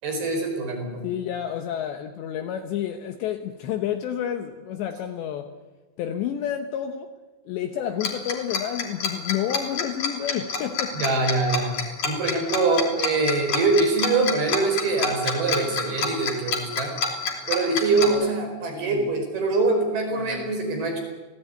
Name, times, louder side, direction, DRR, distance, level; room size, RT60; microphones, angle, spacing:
voice 1, 0.0-1.0 10.9-17.0 17.5-21.0, right 3 dB, 55° right, 4 dB, 6.4 m, -24 dB
voice 2, 1.0-5.5 6.0-7.1 7.5-11.0 18.0-18.4 18.7-19.1 20.1-20.5, left 10 dB, 75° left, 6 dB, 3.1 m, -30 dB
Tick-tock, 8.0-18.1, left 5 dB, 40° left, 4.0 m, -27 dB
27.0 x 17.5 x 9.2 m, 1.2 s
omnidirectional pair, 5.5 m